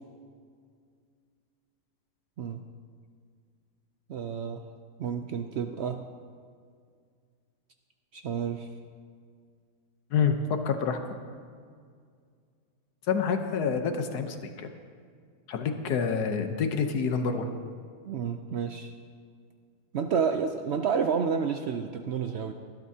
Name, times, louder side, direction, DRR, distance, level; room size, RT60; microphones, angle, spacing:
voice 1, 4.1-4.6 5.0-6.0 8.1-8.7 18.0-18.9 19.9-22.5, right 6 dB, 75° right, 6 dB, 0.6 m, -30 dB
voice 2, 10.6-11.0 13.1-14.7 15.5-17.5, left 6 dB, 75° left, 7 dB, 1.4 m, -27 dB
19.5 x 12.0 x 2.8 m, 2.1 s
omnidirectional pair, 1.7 m